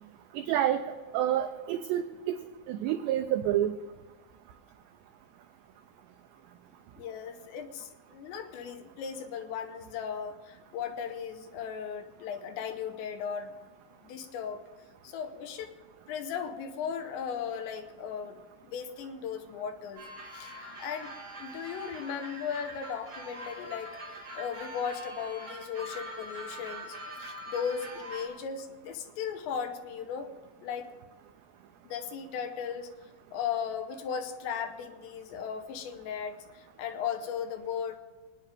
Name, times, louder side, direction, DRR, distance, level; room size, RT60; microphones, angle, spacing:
voice 1, 0.3-0.9 1.1-2.4 2.7-3.7, right 11 dB, 85° right, 7 dB, 2.5 m, -28 dB
voice 2, 7.0-13.6 14.0-14.6 15.0-15.7 16.1-20.1 20.3-20.5 20.8-21.1 21.4-30.3 30.6-30.9 31.8-32.9 33.3-38.0, left 7 dB, 75° left, 6 dB, 2.9 m, -37 dB
sound 1, 20.0-28.3, equal, 30° right, 5.2 m, -43 dB
26.0 x 9.2 x 3.5 m, 1.3 s
omnidirectional pair, 5.8 m